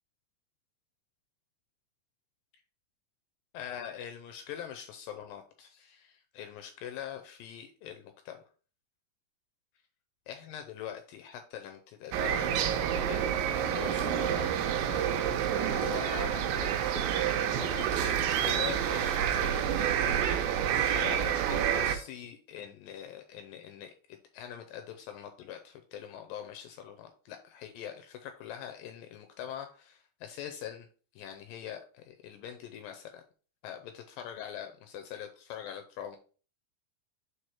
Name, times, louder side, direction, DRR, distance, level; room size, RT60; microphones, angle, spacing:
voice 1, 3.5-8.4 10.3-14.5 14.8-17.2 17.6-30.9 31.1-33.2 33.6-36.2, left 10 dB, 80° left, 6 dB, 2.2 m, -43 dB
sound 1, 12.1-22.0, right 9 dB, 80° right, 2.3 m, -28 dB
4.8 x 4.7 x 4.3 m, 0.40 s
omnidirectional pair, 4.2 m